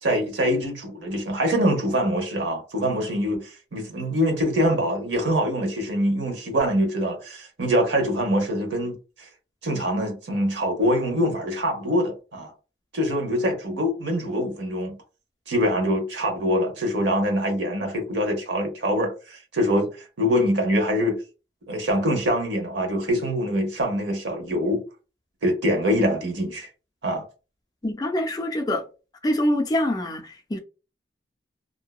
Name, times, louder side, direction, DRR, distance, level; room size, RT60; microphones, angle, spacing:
voice 1, 0.0-9.3 9.6-12.5 12.9-15.0 15.5-21.2 21.7-24.8 25.4-26.7 27.0-27.2, equal, 85° right, 0.9 m, -24 dB
voice 2, 27.8-28.8 29.2-30.6, left 1 dB, 20° left, 0.4 m, -25 dB
2.6 x 2.2 x 2.3 m
head